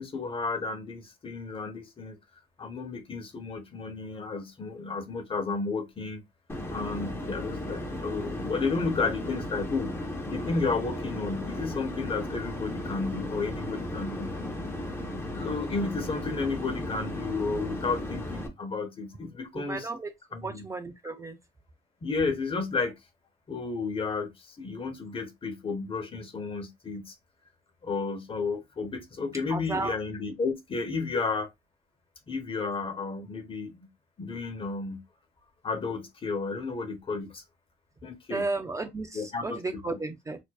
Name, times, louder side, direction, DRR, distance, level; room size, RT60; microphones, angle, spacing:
voice 1, 0.0-2.2 2.6-6.2 6.7-9.9 10.3-14.3 15.3-19.9 20.3-20.6 22.0-22.9 23.5-27.2 27.8-31.5 32.3-33.7 34.2-35.0 35.6-37.4 38.0-38.5 39.1-40.0, left 4 dB, 35° left, 1.0 m, -32 dB
sound 1, 6.5-18.5, left 1 dB, 15° left, 1.0 m, -35 dB
voice 2, 19.5-20.1 20.4-21.4 29.5-30.0 38.3-40.4, right 3 dB, 20° right, 0.5 m, -33 dB
4.3 x 2.6 x 2.4 m
cardioid pair, 110°, 17 cm